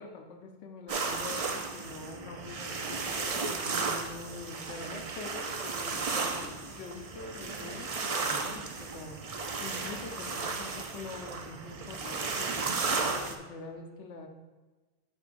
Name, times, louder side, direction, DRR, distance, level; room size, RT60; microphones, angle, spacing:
voice 1, 0.0-14.3, left 3 dB, 70° left, 4 dB, 1.0 m, -45 dB
sound 1, 0.9-13.3, right 4 dB, 50° right, 0.4 m, -34 dB
10.5 x 4.7 x 2.5 m, 1.2 s
omnidirectional pair, 1.2 m